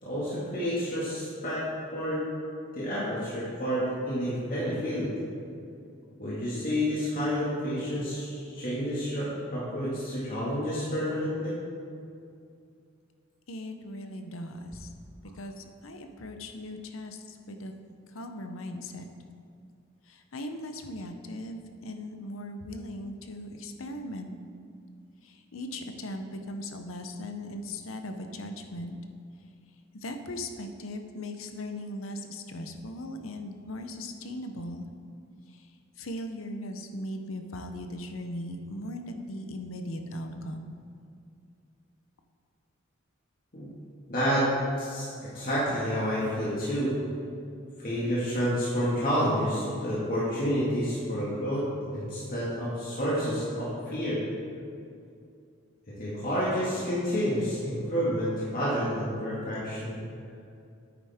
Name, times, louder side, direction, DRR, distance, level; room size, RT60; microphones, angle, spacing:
voice 1, 0.0-2.3 2.7-5.1 6.2-11.6 43.5-43.7 44.1-47.0 47.8-54.3 55.9-60.0, equal, 45° left, -9 dB, 2.0 m, -29 dB
voice 2, 13.5-14.9 15.4-17.7 18.1-19.1 20.1-24.3 25.2-29.0 29.9-34.9 35.5-35.7 36.0-40.7, left 1 dB, 75° left, 6 dB, 0.8 m, -38 dB
9.8 x 8.8 x 3.6 m, 2.4 s
head